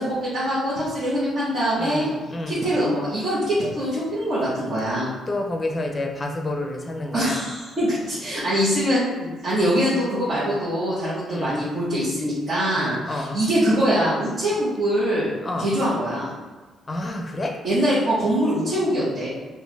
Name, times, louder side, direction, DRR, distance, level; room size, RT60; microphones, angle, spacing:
voice 1, 0.0-2.0 2.5-5.1 7.1-15.3 15.6-16.3 17.6-19.3, equal, 50° right, -11 dB, 1.4 m, -23 dB
voice 2, 1.8-2.6 5.3-7.4 11.3-11.6 12.8-13.4 15.4-15.7 16.9-17.6, left 2 dB, 25° left, 2 dB, 0.6 m, -29 dB
4.7 x 2.6 x 3.3 m, 1.3 s
cardioid pair, 125°, 0 cm